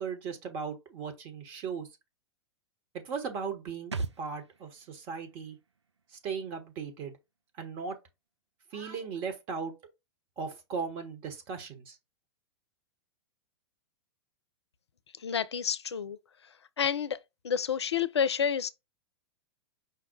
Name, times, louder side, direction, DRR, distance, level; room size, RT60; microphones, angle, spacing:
voice 1, 0.0-1.9 2.9-5.6 6.1-7.2 7.6-8.0 8.7-9.7 10.4-12.0, right 5 dB, 35° right, 1.1 m, -37 dB
sound 1, 3.9-7.4 7.7-7.8, right 3 dB, 85° right, 0.4 m, -42 dB
voice 2, 15.2-16.2 16.4-17.2 17.4-18.7, left 7 dB, 75° left, 0.5 m, -30 dB
5.1 x 2.1 x 4.4 m
figure-of-eight pair, 100°, 14 cm